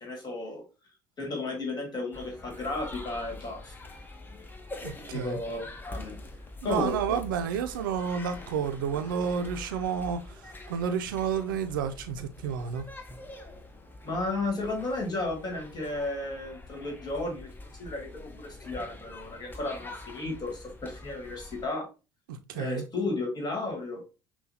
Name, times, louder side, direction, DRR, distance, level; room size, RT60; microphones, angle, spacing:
voice 1, 0.0-0.6 1.2-3.7 5.1-6.2 6.6-7.2 13.1-13.2 14.0-17.5 17.8-21.9 22.5-24.0, left 2 dB, 40° left, 1.7 m, -33 dB
sound 1, 2.1-21.7, left 2 dB, 20° left, 0.8 m, -45 dB
voice 2, 4.8-5.4 6.6-10.2 10.7-12.8 22.5-22.8, right 7 dB, 85° right, 0.4 m, -30 dB
5.6 x 2.2 x 2.8 m
hypercardioid pair, 70°, 11 cm